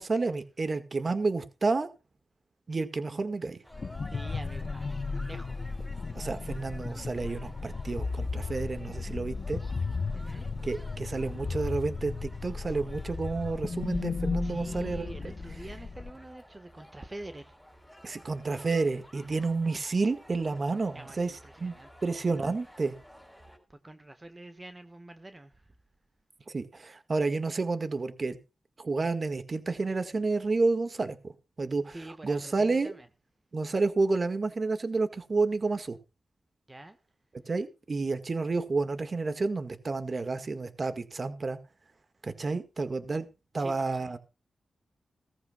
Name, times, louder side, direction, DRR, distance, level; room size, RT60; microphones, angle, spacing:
voice 1, 0.0-1.9 2.7-3.6 6.2-9.6 10.6-15.3 18.0-21.7 22.0-23.0 26.5-28.4 28.8-31.3 31.6-32.0 32.2-32.9 33.5-36.0 37.5-41.6 42.2-43.3 43.5-44.2, right 3 dB, 45° right, 1.8 m, -30 dB
sound 1, 3.6-23.6, equal, 5° right, 6.0 m, -53 dB
sound 2, 3.7-16.1, left 4 dB, 55° left, 1.0 m, -35 dB
voice 2, 4.1-5.6 10.1-10.5 14.4-17.6 20.9-21.9 23.7-25.7 31.9-33.1 36.7-37.0 43.6-44.1, right 2 dB, 25° right, 1.4 m, -46 dB
17.0 x 14.5 x 2.3 m
cardioid pair, 70°, 0 cm